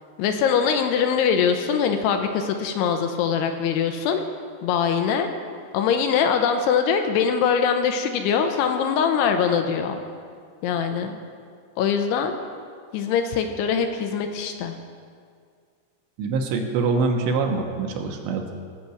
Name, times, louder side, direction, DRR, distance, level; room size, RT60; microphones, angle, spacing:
voice 1, 0.2-4.2 4.6-5.3 5.7-10.0 10.6-11.2 11.8-12.4 12.9-14.8, left 7 dB, 80° left, 6 dB, 2.7 m, -22 dB
voice 2, 16.2-18.5, right 4 dB, 80° right, 1 dB, 3.2 m, -24 dB
17.0 x 5.9 x 7.9 m, 2.1 s
omnidirectional pair, 5.1 m